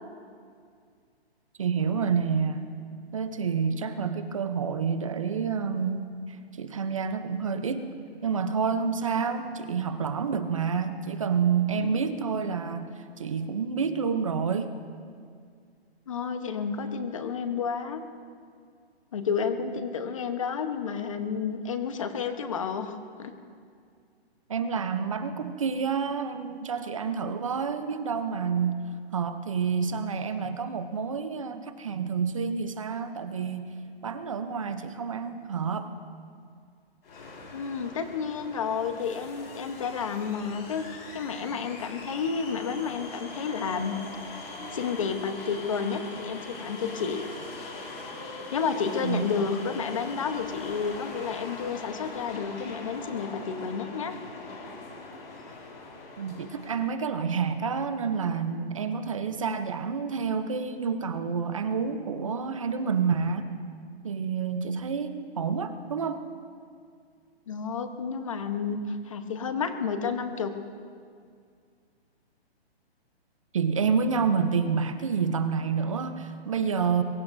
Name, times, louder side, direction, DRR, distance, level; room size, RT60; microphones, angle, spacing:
voice 1, 1.6-2.7 3.1-6.1 6.5-7.9 8.2-12.9 13.2-14.7 24.5-28.8 29.1-33.7 34.0-35.9 49.0-49.3 56.2-63.5 64.0-66.2 73.5-77.0, right 6 dB, 30° right, 10 dB, 0.7 m, -28 dB
voice 2, 16.1-18.0 19.1-23.3 37.5-44.0 44.7-47.2 48.3-54.2 67.5-70.5, left 6 dB, 30° left, 7 dB, 1.0 m, -31 dB
sound 1, 37.0-56.9, left 3 dB, 60° left, 5.0 m, -41 dB
23.0 x 22.5 x 2.7 m, 2.2 s
hypercardioid pair, 175°, 32 cm